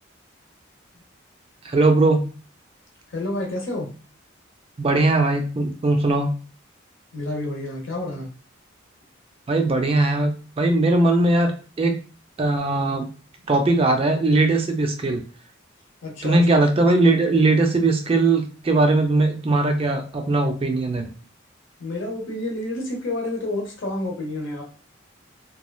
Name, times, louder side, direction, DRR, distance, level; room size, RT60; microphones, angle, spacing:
voice 1, 1.6-2.2 4.8-6.3 9.5-12.0 12.4-13.1 13.5-15.2 16.2-21.1, right 2 dB, 30° right, 5 dB, 0.3 m, -20 dB
voice 2, 3.1-3.9 7.1-8.3 16.0-16.4 21.8-24.6, left 2 dB, 65° left, 0 dB, 0.8 m, -29 dB
3.0 x 2.3 x 2.2 m, 0.38 s
head